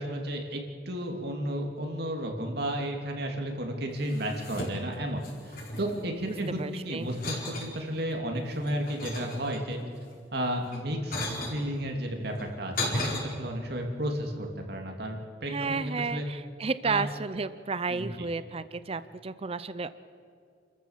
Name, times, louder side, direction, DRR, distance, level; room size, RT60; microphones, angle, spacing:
voice 1, 0.0-6.6 6.8-9.8 10.3-16.2 16.8-17.0 17.9-18.3, right 1 dB, 60° right, 2 dB, 2.9 m, -33 dB
sound 1, 4.0-5.0 5.2-6.6 7.1-7.7 8.3-9.8 10.6-11.6 12.3-13.2, left 2 dB, 50° left, 4.8 m, -35 dB
voice 2, 6.2-7.1 15.4-20.1, right 4 dB, 35° right, 14 dB, 0.6 m, -32 dB
28.5 x 14.0 x 7.4 m, 2.3 s
head